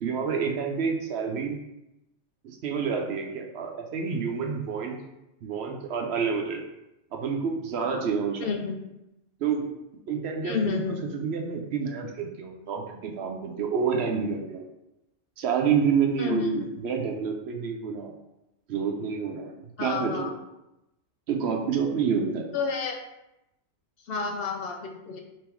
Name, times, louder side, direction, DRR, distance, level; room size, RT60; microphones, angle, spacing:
voice 1, 0.0-1.6 2.4-5.0 5.4-6.6 7.1-8.5 9.4-9.7 10.1-10.8 11.1-14.6 15.4-18.1 18.7-20.3 21.3-22.5, right 6 dB, 70° right, 2 dB, 0.8 m, -28 dB
voice 2, 8.4-8.8 10.4-11.0 16.2-16.5 19.8-20.3 22.5-22.9 24.1-25.2, left 5 dB, 65° left, 2 dB, 0.7 m, -30 dB
3.6 x 3.0 x 4.4 m, 0.90 s
omnidirectional pair, 1.2 m